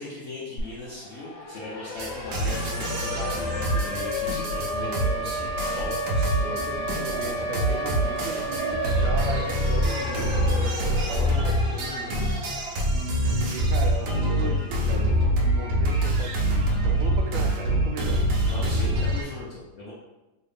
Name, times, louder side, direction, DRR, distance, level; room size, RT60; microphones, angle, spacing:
voice 1, 0.0-6.4 18.5-19.9, left 2 dB, 70° left, -7 dB, 0.7 m, -39 dB
Siren, 0.6-0.7 1.0-13.0, equal, 85° left, 1.4 m, -32 dB
sound 1, 1.9-19.2, equal, 70° right, 1.1 m, -25 dB
voice 2, 6.5-12.4 12.9-18.2, right 3 dB, 90° right, 3 dB, 1.4 m, -37 dB
3.1 x 2.7 x 3.4 m, 1.0 s
omnidirectional pair, 2.1 m